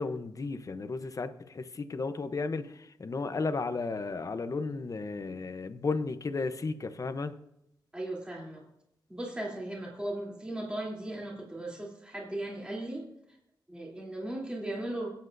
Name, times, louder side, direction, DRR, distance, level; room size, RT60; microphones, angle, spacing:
voice 1, 0.0-7.4, left 4 dB, 40° left, 11 dB, 0.8 m, -34 dB
voice 2, 7.9-8.6 9.1-13.1 13.7-15.1, right 1 dB, 10° right, -3 dB, 3.3 m, -37 dB
25.0 x 8.7 x 2.7 m, 0.82 s
cardioid pair, 85°, 8 cm